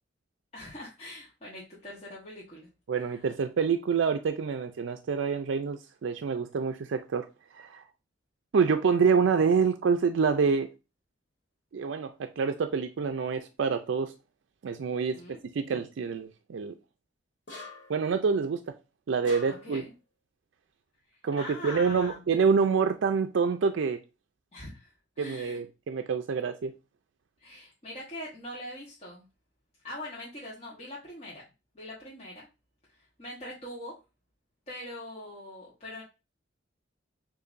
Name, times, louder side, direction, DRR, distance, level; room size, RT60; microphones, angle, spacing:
voice 1, 0.5-2.7 3.0-3.3 15.1-15.4 19.5-19.9 21.4-22.2 24.5-25.6 27.4-29.2 29.8-31.4 31.7-32.5 32.9-33.9 34.7-36.0, left 1 dB, 35° left, 1.1 m, -42 dB
voice 2, 2.9-7.3 7.5-7.8 8.5-10.7 11.7-14.1 14.6-15.2 15.5-16.7 17.9-18.7 19.1-19.8 21.2-24.0 25.2-26.7, right 5 dB, 75° right, 0.4 m, -27 dB
sound 1, 17.5-18.0 19.2-19.8, left 2 dB, 70° left, 1.6 m, -45 dB
6.6 x 2.6 x 2.5 m
head